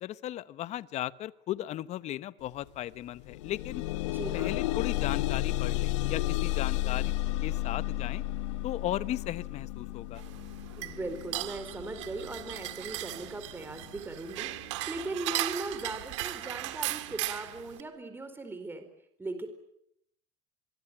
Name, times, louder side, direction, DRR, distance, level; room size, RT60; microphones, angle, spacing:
voice 1, 0.0-3.8 4.3-7.1 7.4-8.2 8.6-10.2, left 13 dB, 50° left, 16 dB, 1.1 m, -36 dB
sound 1, 2.4-2.6 2.9-14.0 14.7-14.8 15.3-15.4, left 16 dB, 90° left, 1.3 m, -33 dB
voice 2, 4.0-4.6 10.8-18.9 19.2-19.5, right 2 dB, 15° right, 8 dB, 4.3 m, -39 dB
sound 2, 10.2-17.8, right 17 dB, 85° right, 2.1 m, -37 dB
26.0 x 23.0 x 8.9 m, 0.76 s
supercardioid pair, 110°, 15 cm